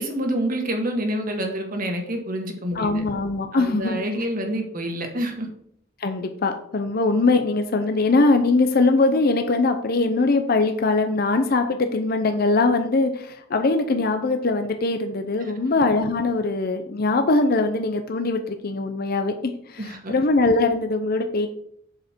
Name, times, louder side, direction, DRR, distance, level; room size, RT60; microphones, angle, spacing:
voice 1, 0.0-3.0 3.5-5.5 19.8-20.1, right 1 dB, 45° right, 3 dB, 1.7 m, -27 dB
voice 2, 2.7-4.0 6.0-21.5, left 3 dB, 50° left, 7 dB, 0.7 m, -21 dB
7.8 x 6.5 x 4.5 m, 0.70 s
head